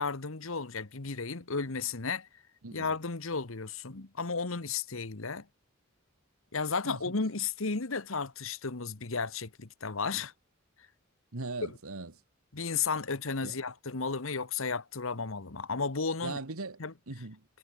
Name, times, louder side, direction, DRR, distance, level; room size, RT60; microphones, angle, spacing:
voice 1, 0.0-2.3 2.7-5.5 6.5-10.3 12.5-16.4 16.8-16.9, left 4 dB, 75° left, 1.3 m, -33 dB
voice 2, 11.3-12.1 13.4-13.5 16.2-17.4, right 3 dB, 90° right, 1.6 m, -40 dB
head